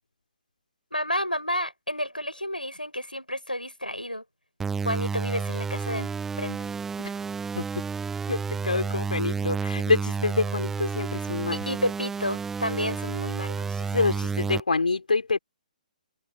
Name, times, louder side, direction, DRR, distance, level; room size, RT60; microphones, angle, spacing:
voice 1, 0.9-4.2 4.8-6.1 6.4-6.7 11.5-13.8, equal, 90° left, 6.0 m, -31 dB
sound 1, 4.6-14.6, right 5 dB, 5° right, 0.8 m, -31 dB
voice 2, 8.3-11.6 13.8-15.4, left 3 dB, 70° left, 4.7 m, -26 dB
figure-of-eight pair, 130°, 5 cm